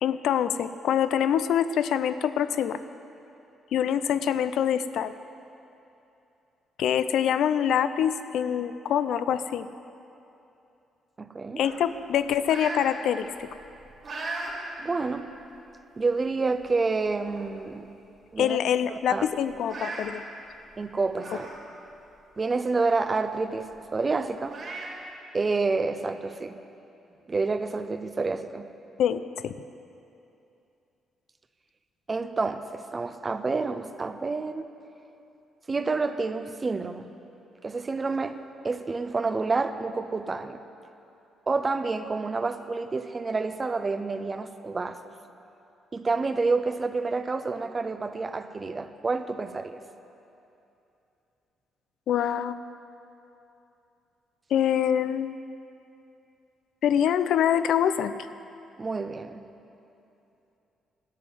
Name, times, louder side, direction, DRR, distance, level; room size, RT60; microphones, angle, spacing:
voice 1, 0.0-2.8 3.7-5.1 6.8-9.7 11.6-13.5 18.4-20.2 29.0-29.5 52.1-52.6 54.5-55.4 56.8-58.1, left 9 dB, 75° left, 13 dB, 0.5 m, -25 dB
voice 2, 11.2-11.6 14.8-15.3 16.0-17.9 18.3-18.6 19.1-19.3 20.8-21.5 22.4-24.6 25.3-26.5 27.3-28.7 32.1-34.7 35.7-37.1 37.6-38.4 38.6-40.6 41.5-45.0 45.9-49.8 58.8-59.4, right 3 dB, 30° right, 10 dB, 0.7 m, -28 dB
sound 1, 11.6-12.9 13.4-14.5 15.0-15.2 16.1-16.2 16.6-16.7 17.0-17.6 17.9-18.0 18.3-18.4 19.5-20.1 21.1-21.6 22.0-22.1 23.7-23.8 24.5-24.9, right 3 dB, 50° right, 3.2 m, -38 dB
12.5 x 7.0 x 9.3 m, 2.8 s
cardioid pair, 90°, 0 cm